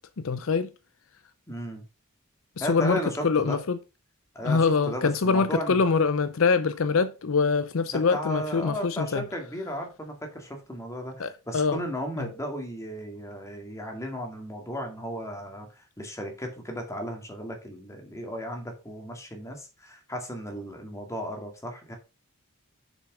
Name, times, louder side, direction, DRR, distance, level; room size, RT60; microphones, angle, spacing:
voice 1, 0.2-0.7 2.6-3.8 4.4-9.2 11.2-11.8 12.2-12.3, left 4 dB, 65° left, 0.6 m, -24 dB
voice 2, 1.5-1.8 2.6-3.6 4.3-5.8 8.1-22.0, equal, 15° left, 2.2 m, -35 dB
6.7 x 6.1 x 4.9 m
head